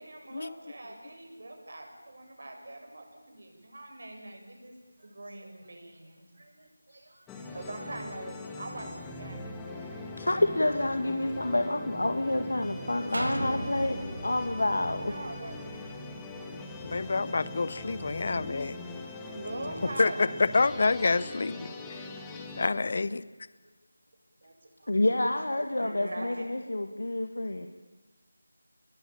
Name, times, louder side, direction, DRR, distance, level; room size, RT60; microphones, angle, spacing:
voice 1, 0.0-10.5 15.1-16.2 18.5-20.4 24.4-25.0 25.8-26.4, right 2 dB, 60° right, 3 dB, 7.9 m, -44 dB
sound 1, 7.3-22.7, left 2 dB, 5° left, 1.7 m, -42 dB
voice 2, 10.2-15.1 15.8-15.9 24.9-27.7, left 1 dB, 80° left, 7 dB, 2.0 m, -28 dB
sound 2, 13.1-16.9 17.4-17.5, right 1 dB, 80° right, 4.7 m, -38 dB
voice 3, 16.8-18.8 20.0-22.1 22.6-23.1, left 3 dB, 45° left, 17 dB, 0.8 m, -27 dB
28.5 x 21.5 x 9.0 m, 1.2 s
figure-of-eight pair, 170°, 0 cm